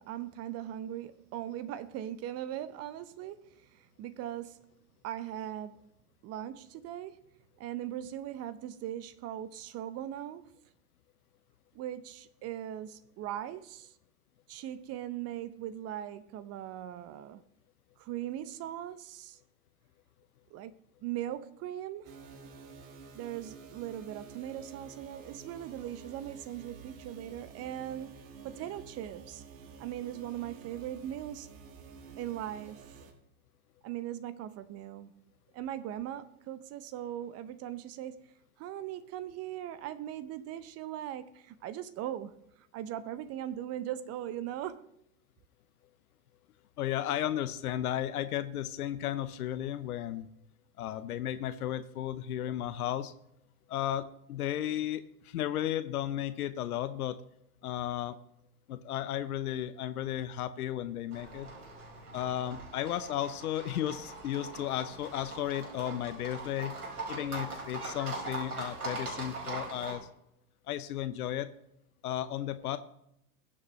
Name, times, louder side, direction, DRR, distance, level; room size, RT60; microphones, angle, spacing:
voice 1, 0.0-4.7 5.0-5.9 6.2-7.2 7.6-10.6 11.7-14.0 14.5-17.4 18.0-19.4 20.5-22.2 23.1-28.2 28.4-29.4 29.8-31.5 32.2-33.0 33.8-35.1 35.5-44.9, right 11 dB, 35° right, 0.7 m, -40 dB
sound 1, 22.0-33.1, right 5 dB, 60° right, 2.3 m, -50 dB
voice 2, 46.8-50.3 50.8-53.1 53.7-57.2 57.6-58.2 58.7-61.5 62.1-66.8 67.1-70.1 70.7-71.5 72.0-72.8, left 11 dB, 70° left, 0.9 m, -34 dB
Livestock farm animals working animals, 61.1-70.0, right 2 dB, 85° right, 5.2 m, -41 dB
22.0 x 7.6 x 3.2 m
hypercardioid pair, 95°, 45 cm